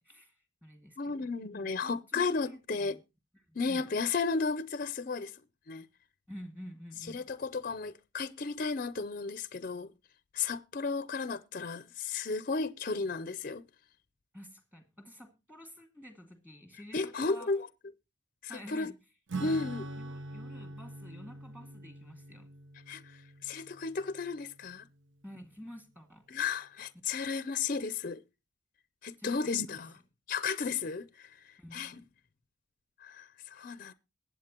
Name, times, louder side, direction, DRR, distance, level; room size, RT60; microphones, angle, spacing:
voice 1, 0.0-1.3 1.5-3.0 3.3-3.9 6.3-7.2 14.3-17.5 18.5-18.9 20.0-22.5 25.2-26.3 29.2-29.4 29.7-29.8 31.6-32.1, equal, 10° right, 2.2 m, -50 dB
voice 2, 1.0-3.0 3.6-5.3 5.7-5.9 7.1-9.9 10.3-13.6 16.9-17.7 18.4-18.9 19.4-19.9 22.9-23.0 23.4-24.9 26.3-28.2 29.0-29.9 30.3-31.3 31.7-32.0 33.0-33.9, left 4 dB, 45° left, 0.5 m, -34 dB
Acoustic guitar / Strum, 19.3-25.2, right 2 dB, 80° right, 0.9 m, -44 dB
21.5 x 8.1 x 2.9 m
head